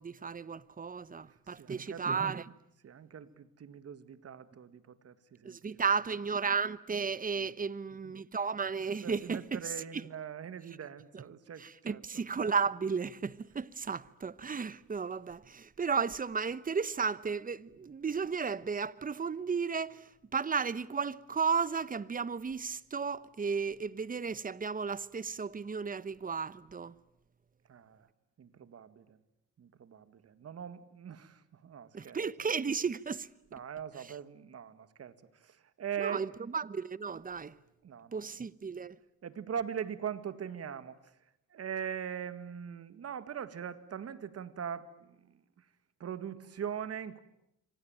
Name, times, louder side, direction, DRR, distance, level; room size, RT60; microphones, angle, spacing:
voice 1, 0.0-2.5 5.4-10.0 11.1-11.2 11.6-20.1 20.3-26.9 31.9-33.3 36.0-37.5 38.1-38.9, right 5 dB, 30° right, 1.0 m, -34 dB
voice 2, 1.6-2.6 2.8-6.0 7.3-7.5 7.9-8.1 8.9-12.2 27.7-28.1 28.4-29.2 29.6-32.5 33.5-35.2 35.4-36.2 37.8-38.3 39.2-41.0 41.5-45.4 46.0-47.2, right 8 dB, 55° right, 2.0 m, -41 dB
27.0 x 24.0 x 9.1 m
cardioid pair, 90°, 30 cm